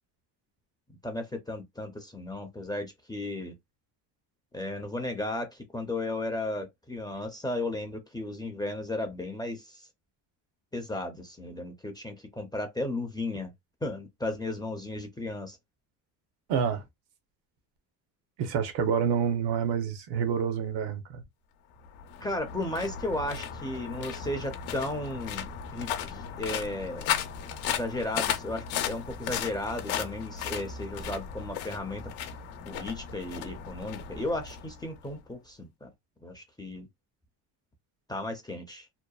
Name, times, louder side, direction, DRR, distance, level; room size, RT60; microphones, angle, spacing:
voice 1, 0.9-3.5 4.5-9.9 10.7-13.5 13.8-15.6 22.2-27.1 27.7-32.1 32.7-35.9 36.2-36.9 38.1-38.9, left 1 dB, 10° left, 0.4 m, -35 dB
voice 2, 16.5-16.8 18.4-21.2, right 7 dB, 70° right, 0.8 m, -28 dB
sound 1, 21.8-35.2, left 8 dB, 90° left, 0.7 m, -36 dB
2.8 x 2.1 x 2.3 m
cardioid pair, 120°, 44 cm